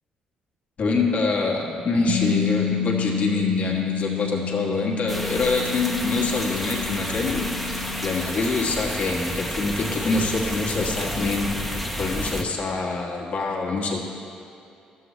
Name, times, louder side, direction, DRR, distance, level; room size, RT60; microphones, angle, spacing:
voice 1, 0.8-14.0, left 3 dB, 55° left, -1 dB, 1.4 m, -25 dB
Bass guitar, 2.1-8.3, left 8 dB, 70° left, 0.8 m, -29 dB
sound 1, 5.1-12.4, equal, ahead, 1.0 m, -31 dB
12.0 x 7.7 x 3.1 m, 2.6 s
supercardioid pair, 60°, 3 cm